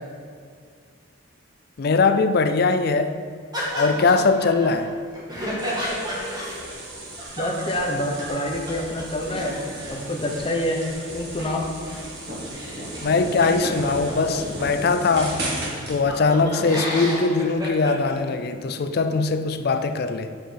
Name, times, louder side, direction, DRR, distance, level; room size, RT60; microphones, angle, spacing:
voice 1, 1.8-3.2 3.8-4.9 13.0-15.5 15.9-20.3, left 4 dB, 45° left, 9 dB, 0.4 m, -21 dB
sound 1, 3.5-8.4 8.7-8.8 9.0-14.6 15.2-15.3 15.5-18.1, equal, 20° right, 1.6 m, -32 dB
sound 2, 5.6-16.0, right 1 dB, 50° right, 1.9 m, -35 dB
voice 2, 7.4-9.6 9.9-10.8 11.1-11.7, left 1 dB, 25° left, 0 dB, 0.9 m, -26 dB
7.3 x 5.2 x 5.8 m, 2.1 s
head